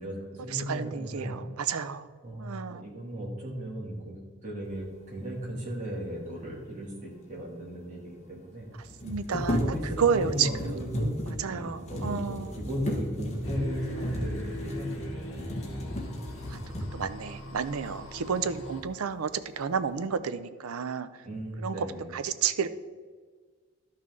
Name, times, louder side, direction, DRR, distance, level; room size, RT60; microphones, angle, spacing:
voice 1, 0.0-1.3 2.2-4.2 4.4-8.7 9.6-11.2 11.5-15.0 21.2-22.1, equal, 35° right, -4 dB, 2.3 m, -36 dB
voice 2, 0.5-2.1 2.4-2.8 9.0-10.8 11.4-12.6 16.5-16.6 16.9-19.3 19.6-21.1 21.6-21.9 22.1-22.7, right 6 dB, 90° right, 12 dB, 0.5 m, -30 dB
sound 1, 7.4-7.5 7.6-7.7 8.8-17.2 17.8-18.0 18.4-19.0 19.4-19.9, equal, 30° left, 1.3 m, -34 dB
sound 2, 13.4-18.8, left 1 dB, 55° left, 1.8 m, -41 dB
12.5 x 5.8 x 3.7 m, 1.5 s
head